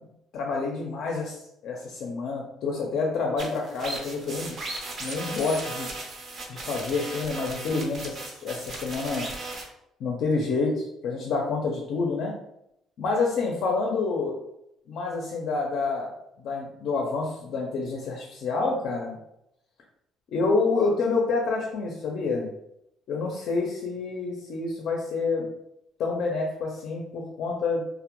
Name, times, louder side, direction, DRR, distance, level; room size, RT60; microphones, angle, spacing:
voice 1, 0.3-4.6 5.0-5.9 6.5-9.3 10.0-12.3 13.0-14.4 14.9-19.2 20.3-22.5 23.1-25.5 26.0-27.8, left 4 dB, 65° left, 0 dB, 0.4 m, -28 dB
sound 1, 3.4-9.6, right 2 dB, 45° right, 0.6 m, -36 dB
2.1 x 2.1 x 2.9 m, 0.80 s
cardioid pair, 130°, 0 cm